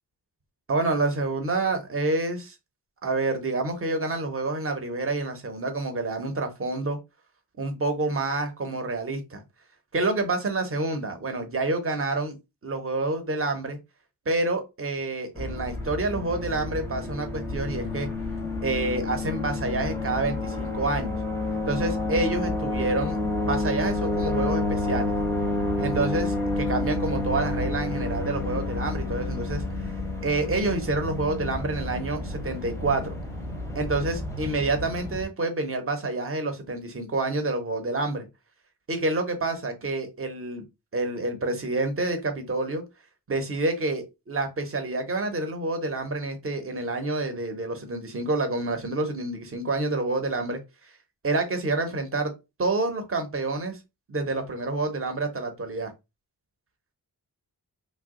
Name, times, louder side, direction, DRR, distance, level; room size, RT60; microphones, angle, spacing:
voice 1, 0.7-2.5 3.0-7.0 7.6-9.4 9.9-12.4 12.6-13.8 14.3-18.1 18.6-21.2 21.7-25.1 25.8-29.6 30.2-33.1 33.7-38.3 38.9-40.6 40.9-42.8 43.3-50.6 51.2-52.3 52.6-53.8 54.1-55.9, right 2 dB, 35° right, 6 dB, 0.8 m, -28 dB
sound 1, 15.4-35.2, left 2 dB, 5° left, 0.7 m, -29 dB
2.9 x 2.3 x 3.6 m, 0.24 s
wide cardioid pair, 105°, 41 cm